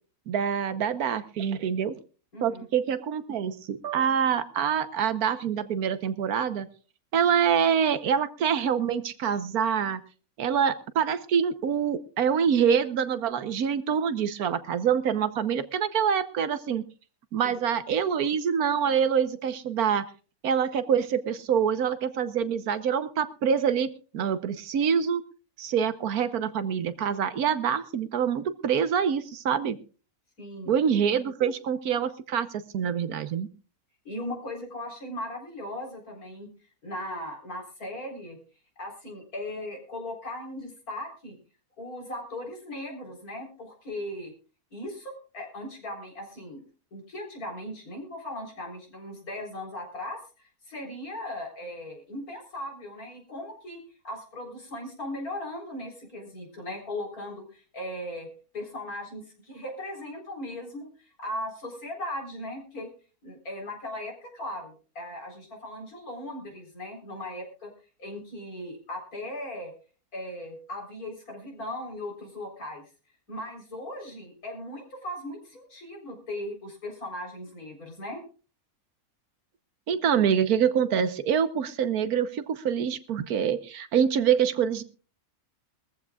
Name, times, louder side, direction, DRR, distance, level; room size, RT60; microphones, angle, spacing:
voice 1, 0.3-2.0 2.4-6.7 7.1-10.0 10.4-16.8 17.3-20.0 20.4-25.2 25.6-29.8 30.7-32.5 32.7-33.5 79.9-84.8, right 7 dB, 85° right, 12 dB, 1.4 m, -25 dB
voice 2, 2.3-2.7 17.4-17.6 30.4-30.7 34.0-36.5 36.8-38.4 38.8-41.4 41.8-44.3 44.7-46.6 46.9-58.3 58.5-62.9 63.2-67.7 68.0-69.7 70.1-72.8 73.3-78.2, left 1 dB, 80° left, 2 dB, 4.5 m, -38 dB
22.0 x 14.5 x 2.4 m, 0.36 s
omnidirectional pair, 1.5 m